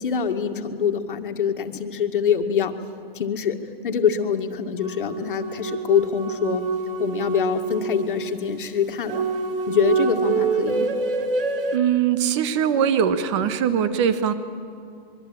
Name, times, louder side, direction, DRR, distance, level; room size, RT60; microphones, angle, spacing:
voice 1, 0.0-2.7 3.1-3.6 3.8-6.6 7.0-9.3 9.7-10.9, left 7 dB, 60° left, 6 dB, 2.0 m, -24 dB
sound 1, 4.8-11.8, right 4 dB, 65° right, 2.9 m, -26 dB
voice 2, 11.7-14.3, right 8 dB, 30° right, 11 dB, 1.4 m, -21 dB
25.0 x 23.0 x 9.0 m, 2.4 s
hypercardioid pair, 155°, 30 cm